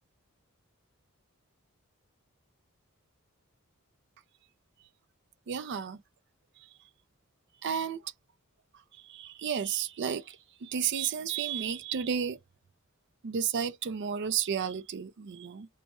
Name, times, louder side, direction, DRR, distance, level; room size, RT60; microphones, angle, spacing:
voice 1, 5.5-6.0 7.6-8.1 8.9-12.4 13.2-15.7, right 7 dB, 55° right, 0.4 m, -32 dB
3.3 x 2.1 x 2.9 m
head